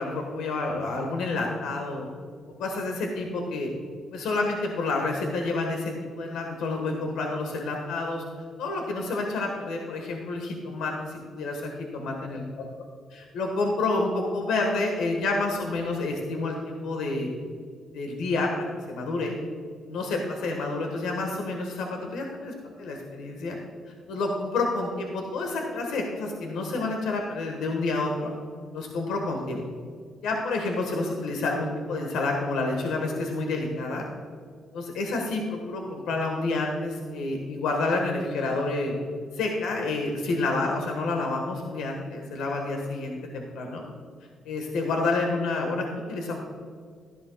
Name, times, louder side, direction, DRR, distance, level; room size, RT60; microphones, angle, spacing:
voice 1, 0.0-2.1 2.6-3.7 4.1-8.2 8.6-12.4 13.3-17.3 17.9-19.3 19.9-23.6 24.1-28.3 28.7-29.6 30.2-34.0 34.7-38.9 39.3-43.8 44.4-46.4, left 3 dB, 85° left, 1 dB, 1.5 m, -29 dB
13.5 x 10.5 x 2.4 m, 2.1 s
cardioid pair, 90°, 0 cm